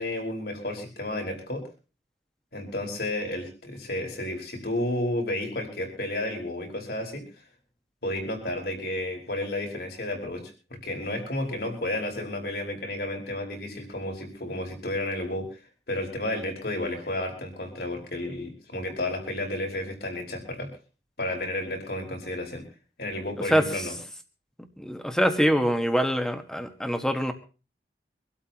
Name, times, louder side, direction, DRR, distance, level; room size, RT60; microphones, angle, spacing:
voice 1, 0.0-1.6 2.5-7.2 8.0-10.5 10.8-15.6 15.9-20.7 21.2-22.6 23.0-23.9, left 1 dB, 65° left, 1 dB, 5.0 m, -32 dB
voice 2, 23.5-23.8 24.8-27.3, equal, 5° left, 6 dB, 1.3 m, -24 dB
25.5 x 12.5 x 3.0 m, 0.35 s
head